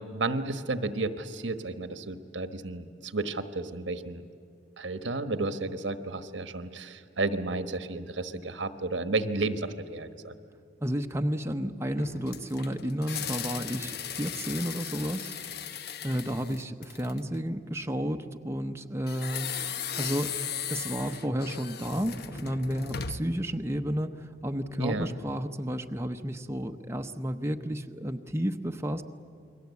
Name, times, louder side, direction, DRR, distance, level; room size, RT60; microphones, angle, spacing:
voice 1, 0.0-4.2 4.8-10.3 24.8-25.1, right 3 dB, 85° right, 9 dB, 1.3 m, -32 dB
voice 2, 10.8-15.3 16.0-19.6 20.0-20.3 20.7-29.0, equal, 15° right, 5 dB, 0.8 m, -32 dB
sound 1, 12.0-17.3 19.1-23.4, left 7 dB, 60° left, 1.0 m, -37 dB
29.0 x 22.0 x 8.4 m, 2.5 s
head